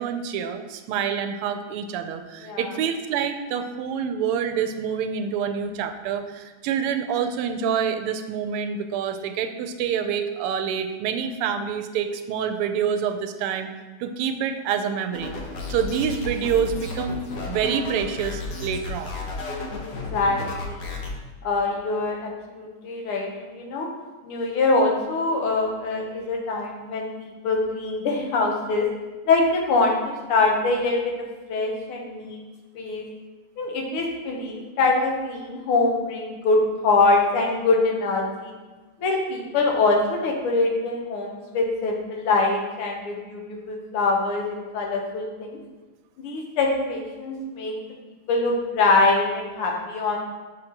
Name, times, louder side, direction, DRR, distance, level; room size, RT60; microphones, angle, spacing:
voice 1, 0.0-13.7 14.0-15.3 15.7-19.2, right 7 dB, 85° right, 8 dB, 1.5 m, -27 dB
voice 2, 2.4-2.8 19.8-20.9 21.4-23.9 24.2-28.9 29.3-32.4 32.8-33.0 33.6-38.5 39.0-43.4 43.7-45.6 46.2-47.7 48.3-50.2, left 3 dB, 80° left, 0 dB, 1.9 m, -24 dB
sound 1, 15.1-21.1, left 2 dB, 55° left, 1.3 m, -33 dB
6.5 x 6.5 x 2.9 m, 1.3 s
omnidirectional pair, 2.4 m